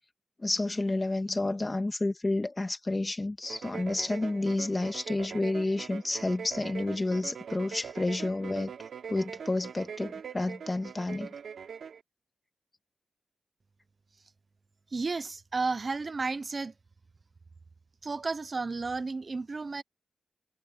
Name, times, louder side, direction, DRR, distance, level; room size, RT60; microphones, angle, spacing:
voice 1, 0.4-8.7 9.1-11.3, left 2 dB, 25° left, 1.9 m, -30 dB
sound 1, 3.4-12.0, right 7 dB, 80° right, 4.2 m, -42 dB
voice 2, 14.9-16.7 18.0-19.8, right 3 dB, 40° right, 0.9 m, -32 dB
cardioid pair, 80°, 0 cm